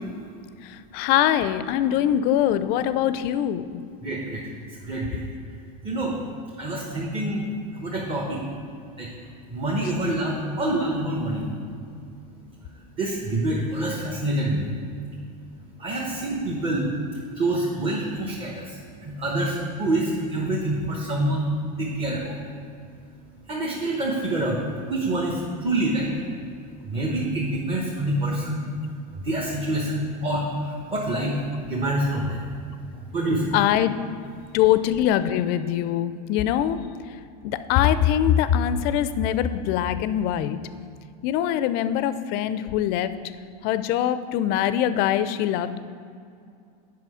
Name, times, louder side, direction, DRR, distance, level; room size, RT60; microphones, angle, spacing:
voice 1, 0.9-3.8 33.5-33.9 34.5-36.8 37.4-40.6 41.2-43.1 43.6-45.9, left 11 dB, 50° left, 12 dB, 0.4 m, -23 dB
voice 2, 4.0-4.4 4.8-5.2 5.8-6.2 6.6-8.4 9.0-9.1 9.5-11.5 13.0-14.6 15.8-16.9 17.3-18.8 19.0-21.5 21.7-22.4 23.5-24.6 24.9-26.1 26.9-28.6 29.2-31.4 31.7-32.4 33.1-33.5, right 1 dB, 25° right, -4 dB, 1.1 m, -26 dB
7.6 x 5.6 x 4.9 m, 2.4 s
supercardioid pair, 135°, 21 cm